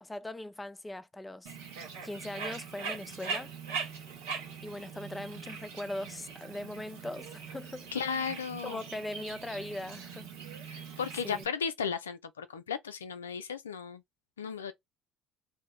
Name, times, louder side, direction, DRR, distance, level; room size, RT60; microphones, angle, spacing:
voice 1, 0.0-1.5 2.0-3.5 4.6-7.9 8.6-10.3 11.2-11.5, left 1 dB, 15° left, 0.5 m, -40 dB
Bird, 1.4-11.4, right 5 dB, 85° right, 1.2 m, -41 dB
voice 2, 7.9-8.8 10.7-14.0 14.4-14.7, left 6 dB, 90° left, 0.3 m, -35 dB
2.7 x 2.1 x 3.5 m
hypercardioid pair, 60°, 0 cm